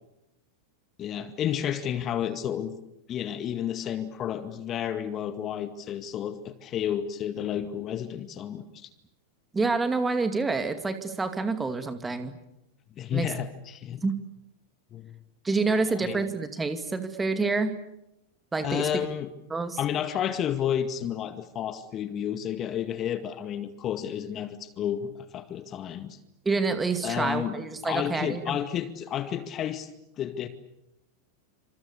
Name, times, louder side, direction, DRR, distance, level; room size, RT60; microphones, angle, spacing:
voice 1, 1.0-2.8 3.1-8.9 13.0-14.0 14.9-15.2 15.9-16.3 18.6-19.3 19.8-26.2 27.0-29.9 30.2-30.5, left 10 dB, 30° left, 10 dB, 2.0 m, -31 dB
voice 2, 9.5-12.4 13.1-13.3 14.0-14.2 15.4-17.7 18.5-19.0 19.5-19.8 26.4-28.6, right 4 dB, 10° right, 9 dB, 2.4 m, -27 dB
28.0 x 26.5 x 6.8 m, 0.88 s
figure-of-eight pair, 90°, 0 cm